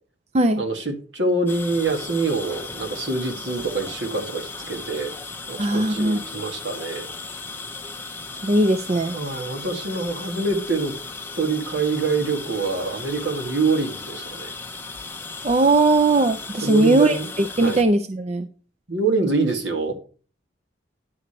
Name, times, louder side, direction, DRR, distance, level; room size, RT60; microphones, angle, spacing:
voice 1, 0.6-5.1 5.5-7.1 9.1-10.9 11.4-14.5 16.6-17.3 17.6-17.8 18.9-20.0, right 3 dB, 70° right, 3 dB, 1.8 m, -25 dB
sound 1, 1.5-17.8, left 4 dB, 10° left, 0.7 m, -36 dB
voice 2, 5.6-6.2 8.4-9.2 15.4-18.5, right 2 dB, 35° right, 8 dB, 0.5 m, -19 dB
9.8 x 6.7 x 4.2 m, 0.38 s
head